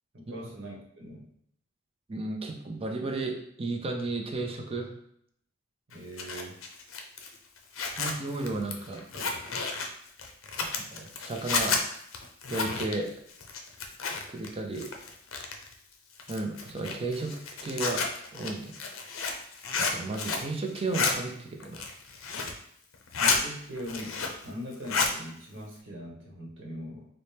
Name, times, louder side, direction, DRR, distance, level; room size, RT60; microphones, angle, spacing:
voice 1, 0.1-1.3 5.9-6.6 23.2-27.1, equal, 70° right, -2 dB, 1.0 m, -41 dB
voice 2, 2.1-4.9 7.9-9.3 10.6-11.8 12.5-13.1 14.3-14.9 16.3-18.0 18.3-18.7 19.8-21.8, right 2 dB, 30° right, 2 dB, 0.5 m, -34 dB
Zipper (clothing), 5.9-14.5 14.7-15.7 16.2-20.5 20.8-21.1 21.6-22.6 22.9-23.4 23.8-24.5 24.7-25.1, left 4 dB, 80° left, 0.5 m, -31 dB
4.2 x 2.1 x 3.3 m, 0.70 s
head